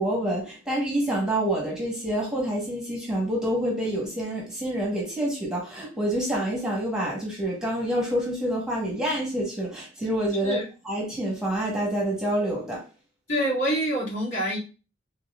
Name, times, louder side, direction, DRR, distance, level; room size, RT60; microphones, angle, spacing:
voice 1, 0.0-10.6 10.8-12.8, right 1 dB, 5° right, 1.2 m, -27 dB
voice 2, 13.3-14.6, equal, 75° left, 2.3 m, -26 dB
4.3 x 3.4 x 2.4 m
head